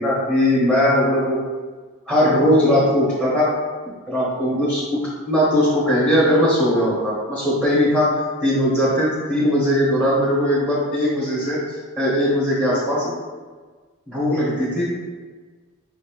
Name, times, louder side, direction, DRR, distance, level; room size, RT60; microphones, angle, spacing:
voice 1, 0.0-1.4 2.1-3.5 4.1-8.1 8.4-11.6 12.0-13.1 14.1-14.9, equal, 5° right, -8 dB, 1.2 m, -19 dB
5.1 x 2.8 x 3.7 m, 1.4 s
head